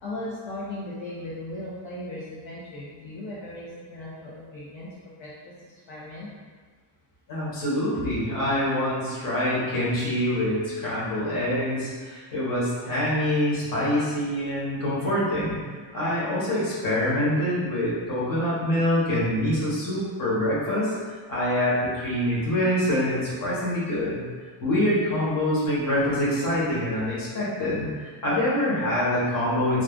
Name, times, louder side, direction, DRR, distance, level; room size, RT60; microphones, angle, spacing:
voice 1, 0.0-5.3 5.6-6.3, left 1 dB, 75° left, -8 dB, 0.8 m, -37 dB
voice 2, 7.3-15.6 15.9-24.2 24.6-27.9 28.2-29.8, left 1 dB, 45° left, -8 dB, 1.1 m, -25 dB
2.5 x 2.4 x 3.6 m, 1.5 s
cardioid pair, 170°, 46 cm